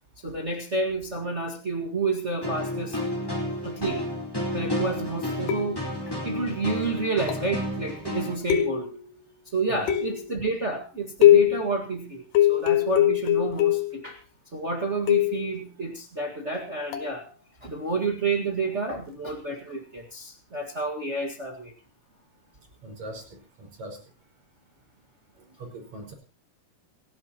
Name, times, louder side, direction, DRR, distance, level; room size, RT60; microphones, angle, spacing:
voice 1, 0.2-3.0 3.6-4.0 4.5-5.8 6.1-8.9 9.5-12.2 12.5-14.2 14.5-17.2 17.6-21.7, right 3 dB, 60° right, 1 dB, 0.7 m, -30 dB
sound 1, 2.4-8.4, left 1 dB, 5° left, 4.0 m, -31 dB
sound 2, 5.5-6.0 7.3-7.6 8.5-9.1 9.9-10.4 11.2-11.7 12.3-14.0 15.1-15.5 16.9-17.2, left 13 dB, 80° left, 3.6 m, -21 dB
voice 2, 22.8-24.0 25.6-26.1, right 1 dB, 40° right, 2 dB, 6.3 m, -41 dB
28.5 x 11.0 x 3.0 m, 0.32 s
omnidirectional pair, 4.8 m